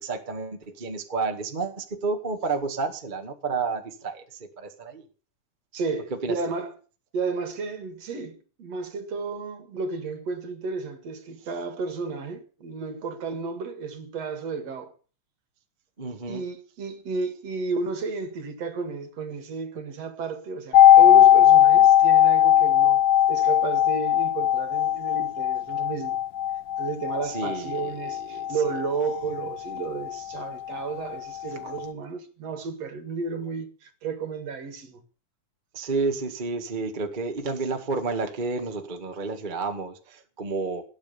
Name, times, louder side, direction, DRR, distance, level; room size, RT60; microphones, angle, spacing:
voice 1, 0.0-5.0 6.2-6.4 16.0-16.4 27.2-28.5 35.7-40.8, right 4 dB, 20° right, 1.4 m, -30 dB
voice 2, 5.7-6.7 7.1-14.9 16.3-23.0 23.3-26.2 26.8-35.0, right 4 dB, 60° right, 2.9 m, -32 dB
sound 1, 20.7-30.5 30.7-30.8, left 11 dB, 70° left, 1.6 m, -19 dB
18.0 x 9.0 x 7.0 m
omnidirectional pair, 3.5 m